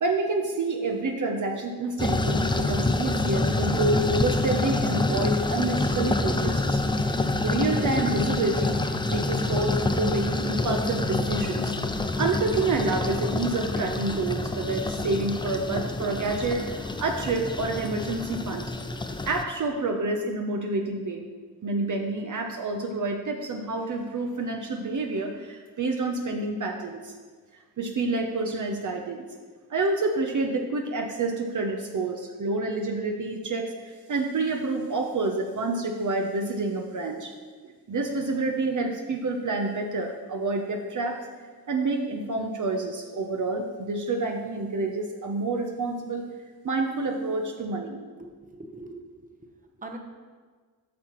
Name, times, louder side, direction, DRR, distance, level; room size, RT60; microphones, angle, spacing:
voice 1, 0.0-6.8 7.2-8.8 9.1-18.7 19.3-21.3 21.6-27.1 27.8-29.3 29.7-37.3 37.6-41.2 41.7-46.3 46.6-48.0, right 3 dB, 50° right, 2 dB, 0.7 m, -28 dB
sound 1, 2.0-19.4, left 2 dB, 15° left, 0.4 m, -27 dB
voice 2, 48.2-50.0, right 2 dB, 20° right, 3 dB, 0.9 m, -43 dB
8.4 x 5.7 x 3.0 m, 1.5 s
cardioid pair, 60°, 38 cm